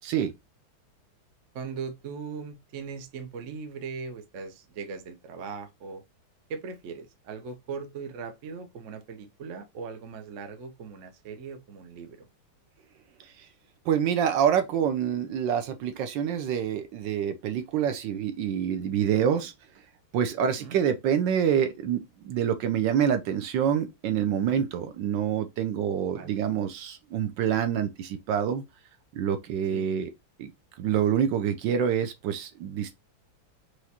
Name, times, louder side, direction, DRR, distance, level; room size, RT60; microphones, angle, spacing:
voice 1, 1.5-6.0 6.5-12.3 20.4-20.8 26.1-26.3 29.7-29.9, right 5 dB, 55° right, 0.9 m, -39 dB
voice 2, 13.8-19.5 20.1-28.6 29.1-30.1 30.4-30.5 30.8-32.9, right 8 dB, 75° right, 1.2 m, -26 dB
4.9 x 3.0 x 2.8 m
omnidirectional pair, 2.2 m